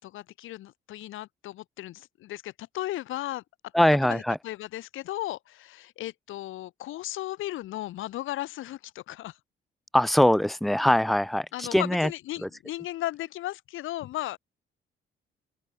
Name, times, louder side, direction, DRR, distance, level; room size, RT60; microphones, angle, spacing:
voice 1, 0.0-3.4 4.0-9.4 11.5-14.4, left 15 dB, 85° left, 4.8 m, -36 dB
voice 2, 3.7-4.4 9.9-12.1 12.4-12.5, left 1 dB, ahead, 1.3 m, -22 dB
open air
cardioid pair, 90°, 20 cm